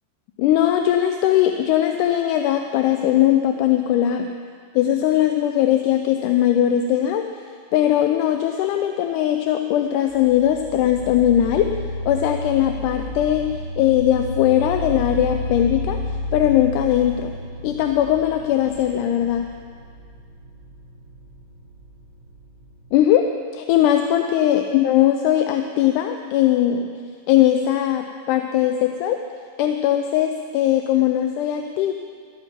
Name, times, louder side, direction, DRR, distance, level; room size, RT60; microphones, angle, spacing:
voice 1, 0.4-4.3 4.8-7.3 7.7-11.8 12.1-13.5 13.8-16.0 16.3-17.3 17.6-19.5 22.9-23.3 23.5-26.9 27.3-29.2 29.6-31.9, left 11 dB, 80° left, 6 dB, 2.0 m, -19 dB
sound 1, 10.1-22.9, left 1 dB, 30° right, 0.8 m, -32 dB
13.5 x 12.5 x 4.4 m, 2.1 s
omnidirectional pair, 3.8 m